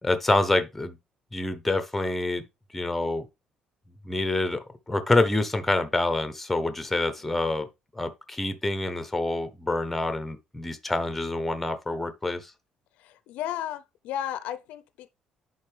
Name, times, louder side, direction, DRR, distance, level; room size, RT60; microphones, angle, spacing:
voice 1, 0.0-1.0 1.3-2.4 2.7-3.3 4.0-7.7 7.9-12.5, left 2 dB, 5° left, 0.7 m, -27 dB
voice 2, 13.0-15.1, left 11 dB, 85° left, 0.6 m, -34 dB
10.5 x 4.0 x 3.3 m
cardioid pair, 175°, 2 cm